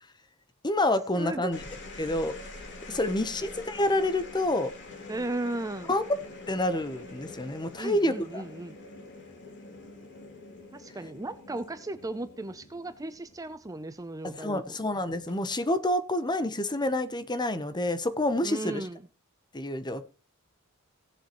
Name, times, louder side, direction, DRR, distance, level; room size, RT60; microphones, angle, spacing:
voice 1, 0.6-1.6 2.0-2.3 2.9-4.7 5.9-6.0 6.5-8.4 14.2-18.8 19.5-20.1, left 1 dB, 20° left, 11 dB, 1.0 m, -28 dB
voice 2, 1.1-1.6 5.1-5.9 7.8-8.7 10.7-14.8 18.4-19.0, right 2 dB, 15° right, 11 dB, 0.6 m, -36 dB
sound 1, 1.3-13.9 15.1-15.5, left 2 dB, 55° left, 3.1 m, -46 dB
17.5 x 7.4 x 3.1 m, 0.34 s
head